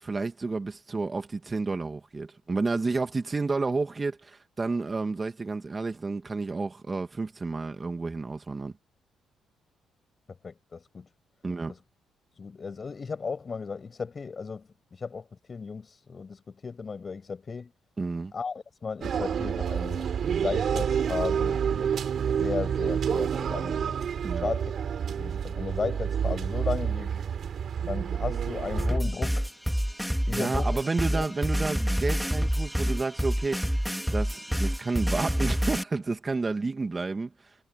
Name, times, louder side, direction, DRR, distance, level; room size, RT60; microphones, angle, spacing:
voice 1, 0.0-8.7 11.4-11.7 18.0-18.3 24.2-24.5 30.3-33.7 34.1-37.3, right 3 dB, 25° right, 2.4 m, -30 dB
voice 2, 10.4-11.1 11.7-11.8 12.3-17.7 18.3-22.0 22.2-24.0 24.3-24.7 25.1-27.2 27.9-29.5 30.3-30.8 31.1-31.3, left 5 dB, 35° left, 6.3 m, -35 dB
sound 1, 19.0-29.0, right 8 dB, 60° right, 3.7 m, -29 dB
sound 2, 28.8-35.8, equal, ahead, 3.3 m, -27 dB
cardioid pair, 90°, 0 cm